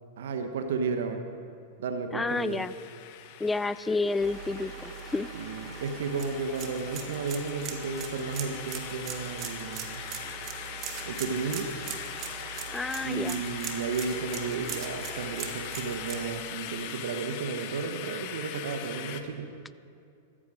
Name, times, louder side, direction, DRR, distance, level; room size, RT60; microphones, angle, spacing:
voice 1, 0.2-1.2 1.8-2.6 5.3-10.0 11.0-11.7 13.0-19.5, right 5 dB, 75° right, 6 dB, 1.2 m, -33 dB
voice 2, 2.1-2.7 3.4-5.3 12.7-13.4, left 3 dB, 10° left, 16 dB, 0.4 m, -30 dB
sound 1, 2.3-19.2, left 10 dB, 55° left, 1.1 m, -41 dB
sound 2, 4.2-16.3, right 8 dB, 40° right, 1.7 m, -40 dB
14.0 x 14.0 x 5.0 m, 2.4 s
hypercardioid pair, 110°, 0 cm